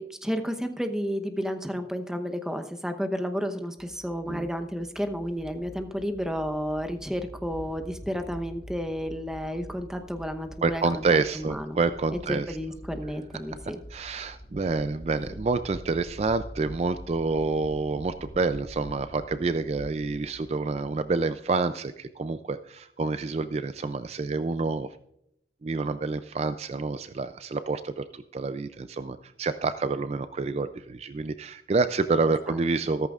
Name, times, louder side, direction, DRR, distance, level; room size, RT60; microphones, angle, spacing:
voice 1, 0.0-11.0 11.3-11.8 12.3-13.8, equal, 5° right, 7 dB, 0.8 m, -31 dB
sound 1, 3.8-21.2, equal, 75° left, 2.8 m, -54 dB
sound 2, 5.2-20.2, equal, 35° left, 5.2 m, -46 dB
voice 2, 10.6-12.6 13.9-25.0 25.6-33.1, right 3 dB, 35° right, 12 dB, 0.3 m, -28 dB
14.0 x 14.0 x 2.4 m, 0.77 s
head